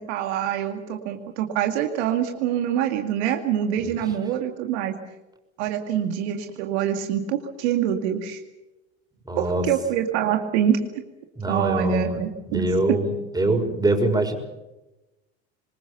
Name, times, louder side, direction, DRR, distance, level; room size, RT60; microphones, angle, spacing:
voice 1, 0.1-5.0 5.6-8.4 9.4-10.8 11.5-12.7, right 10 dB, 70° right, 5 dB, 2.3 m, -25 dB
voice 2, 9.2-9.7 11.4-12.2 12.5-14.3, right 1 dB, 10° right, 4 dB, 5.8 m, -24 dB
25.5 x 20.5 x 7.0 m, 1.0 s
hypercardioid pair, 80°, 34 cm